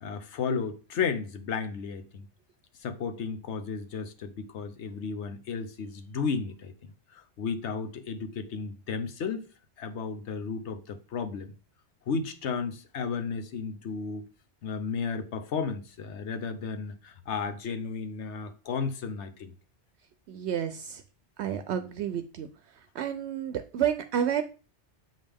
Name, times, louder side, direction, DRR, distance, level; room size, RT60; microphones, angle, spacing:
voice 1, 0.0-2.3 2.8-6.7 7.1-9.5 9.8-11.5 12.1-14.3 14.6-19.5, left 5 dB, 75° left, 1.2 m, -33 dB
voice 2, 20.3-21.0 21.4-22.5 22.9-24.4, right 9 dB, 75° right, 0.8 m, -30 dB
7.7 x 5.3 x 3.5 m
omnidirectional pair, 1.2 m